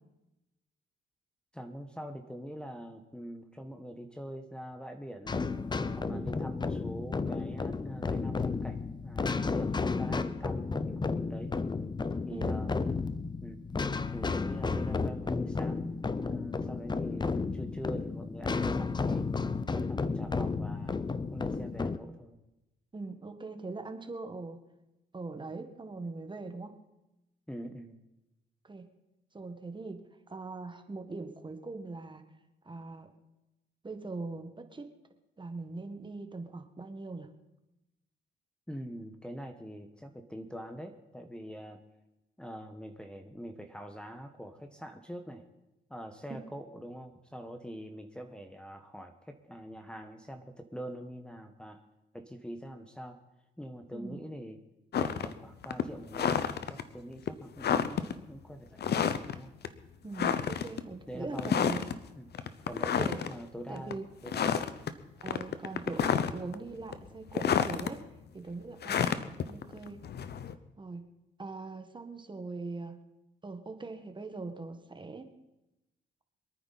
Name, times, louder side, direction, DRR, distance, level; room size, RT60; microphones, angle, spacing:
voice 1, 1.5-5.4 6.0-11.6 12.3-12.8 13.4-13.6 14.1-19.3 19.7-21.0 21.3-22.4 27.5-28.0 38.7-41.8 42.4-45.4 45.9-51.8 52.1-53.2 53.6-54.6 54.9-59.5 61.1-61.8 62.2-62.3 62.7-64.8, equal, 5° left, 3 dB, 1.3 m, -44 dB
sound 1, 5.3-22.0, left 4 dB, 20° left, 0.7 m, -32 dB
voice 2, 22.9-24.6 25.1-26.7 28.6-28.9 29.3-32.2 32.6-33.1 33.8-34.9 35.4-37.3 53.9-54.2 60.0-61.8 63.0-63.2 63.7-64.0 65.2-68.0 68.3-70.0 70.8-71.1 71.4-73.0 73.4-75.3, right 3 dB, 25° right, 7 dB, 1.6 m, -41 dB
sound 2, 54.9-55.3 55.6-56.8 57.3-57.4 57.6-58.1 58.8-59.4 59.6-59.7 60.2-60.8 61.4-61.9 62.3-63.3 63.8-63.9 64.3-64.9 65.2-66.5 66.9-67.9 68.8-70.5, left 8 dB, 55° left, 1.0 m, -29 dB
25.5 x 9.5 x 4.2 m, 0.96 s
cardioid pair, 90°, 20 cm